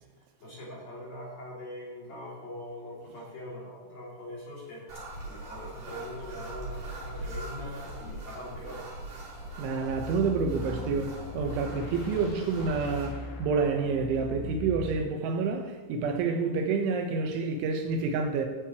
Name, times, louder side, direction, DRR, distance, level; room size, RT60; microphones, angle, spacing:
voice 1, 0.4-4.9 5.2-8.9, left 1 dB, 40° left, -6 dB, 3.8 m, -42 dB
sound 1, 4.9-13.1, right 2 dB, 45° right, 3.9 m, -41 dB
voice 2, 9.6-18.5, right 4 dB, 75° right, 4 dB, 3.6 m, -28 dB
sound 2, 9.8-15.1, left 4 dB, 65° left, 3.0 m, -40 dB
16.0 x 9.9 x 3.2 m, 1.3 s
omnidirectional pair, 5.8 m